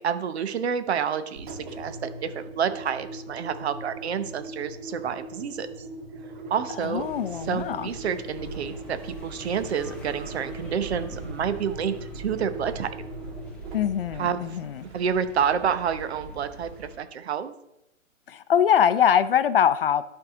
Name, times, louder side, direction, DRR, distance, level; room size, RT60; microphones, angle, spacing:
voice 1, 0.0-5.7 6.5-7.0 7.5-12.9 14.2-14.6 14.9-17.5, right 7 dB, 55° right, 10 dB, 0.9 m, -29 dB
Engine, 1.3-15.3, right 2 dB, 40° right, 1.6 m, -40 dB
voice 2, 6.8-7.9 13.7-14.8 18.3-20.0, left 9 dB, 45° left, 13 dB, 0.5 m, -22 dB
sound 1, 7.0-17.0, equal, 5° left, 0.8 m, -44 dB
11.5 x 4.8 x 3.8 m, 0.86 s
hypercardioid pair, 145°, 38 cm